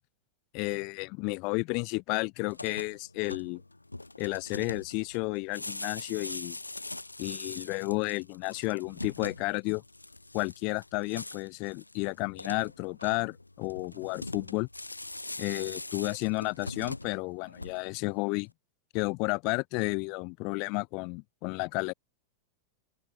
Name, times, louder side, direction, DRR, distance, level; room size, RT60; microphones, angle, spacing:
voice 1, 0.5-3.6 4.2-6.6 7.2-9.8 10.3-14.7 15.4-18.5 18.9-21.9, left 32 dB, 45° left, 5.1 m, -32 dB
sound 1, 2.4-18.1, left 2 dB, 85° left, 4.8 m, -42 dB
open air
figure-of-eight pair, 90°, 0 cm